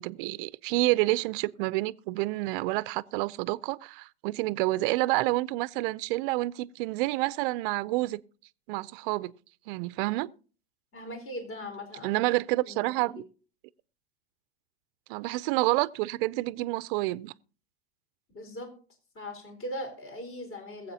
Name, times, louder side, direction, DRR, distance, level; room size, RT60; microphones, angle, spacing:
voice 1, 0.0-8.2 8.7-9.3 9.7-10.3 12.0-13.2 15.1-17.3, right 20 dB, 55° right, 0.5 m, -28 dB
voice 2, 10.9-12.2 12.6-12.9 18.3-18.7 19.1-20.9, left 1 dB, 40° left, 4.6 m, -39 dB
22.0 x 7.8 x 2.8 m
hypercardioid pair, 115°, 33 cm